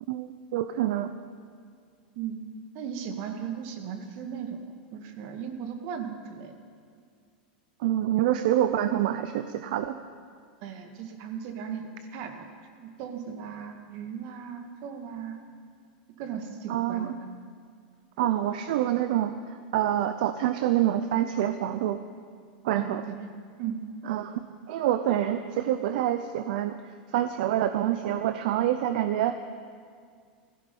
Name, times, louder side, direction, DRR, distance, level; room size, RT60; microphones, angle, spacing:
voice 1, 0.1-1.1 7.8-10.0 16.7-17.2 18.2-22.0 22.6-23.0 24.0-26.8 27.1-29.4, right 12 dB, 70° right, 11 dB, 0.6 m, -26 dB
voice 2, 2.7-4.6 4.9-6.5 10.6-12.5 12.8-15.4 16.2-17.3 22.8-23.3 23.6-23.8, right 7 dB, 55° right, 6 dB, 1.9 m, -37 dB
17.0 x 15.0 x 5.4 m, 2.1 s
supercardioid pair, 130°, 5 cm